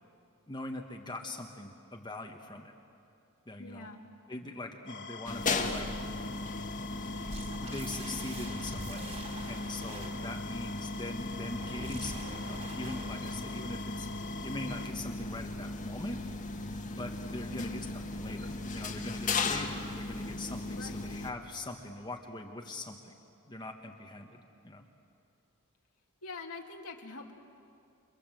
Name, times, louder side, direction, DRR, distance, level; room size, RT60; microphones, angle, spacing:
voice 1, 0.5-2.7 3.5-3.9 4.3-5.9 7.6-9.1 9.5-14.1 14.4-16.2 16.9-17.9 18.1-23.1 23.5-24.8, left 2 dB, 20° left, 2 dB, 1.3 m, -42 dB
voice 2, 3.6-4.0 17.5-17.8 20.7-21.0 26.2-27.3, left 3 dB, 80° left, 1 dB, 2.3 m, -44 dB
sound 1, 4.9-14.9, left 4 dB, 55° left, 2.4 m, -45 dB
sound 2, 5.3-21.3, left 3 dB, 35° left, 1.7 m, -37 dB
sound 3, 7.3-10.3 11.3-13.5, right 2 dB, 30° right, 4.7 m, -45 dB
29.5 x 25.0 x 7.8 m, 2.5 s
head